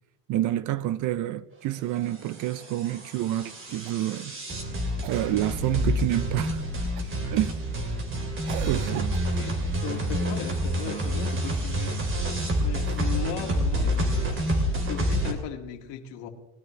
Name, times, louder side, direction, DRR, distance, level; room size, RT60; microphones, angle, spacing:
voice 1, 0.3-4.3 5.1-6.6 7.3-7.6 8.7-9.1, right 14 dB, 40° right, 0.5 m, -28 dB
sound 1, 2.1-15.3, equal, 25° right, 2.6 m, -28 dB
Cough, 3.9-4.2 5.0-5.8 7.0-7.3 8.5-9.5 12.6-13.4 14.9-15.0, right 12 dB, 65° right, 1.1 m, -42 dB
voice 2, 9.3-12.0 12.6-16.3, left 9 dB, 60° left, 2.2 m, -37 dB
20.0 x 12.0 x 3.2 m
cardioid pair, 135°, 47 cm